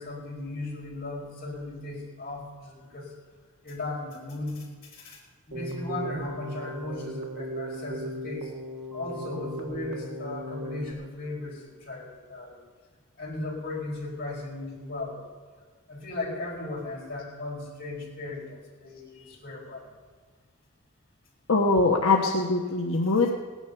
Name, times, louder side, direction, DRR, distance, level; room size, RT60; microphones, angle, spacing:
voice 1, 0.0-3.1 3.6-5.2 5.5-8.5 8.9-12.6 13.2-15.2 15.9-19.9, left 2 dB, 45° left, -3 dB, 4.8 m, -36 dB
Keyboard (musical), 5.5-10.9, right 1 dB, 70° right, 1.8 m, -37 dB
voice 2, 21.5-23.3, left 3 dB, 70° left, 0 dB, 1.2 m, -22 dB
17.0 x 10.5 x 6.8 m, 1.5 s
head